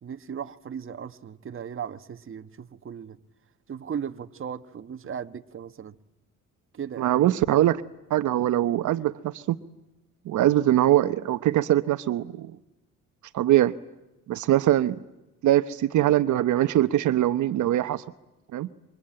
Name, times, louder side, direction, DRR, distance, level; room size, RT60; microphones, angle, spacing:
voice 1, 0.0-3.2 3.7-5.9 6.7-7.1, right 7 dB, 45° right, 1.4 m, -37 dB
voice 2, 7.0-7.8 8.1-9.6 10.3-12.5 13.3-13.7 14.3-15.0 15.4-18.0 18.5-18.7, right 13 dB, 75° right, 1.0 m, -22 dB
27.0 x 25.0 x 8.9 m
cardioid pair, 90°, 30 cm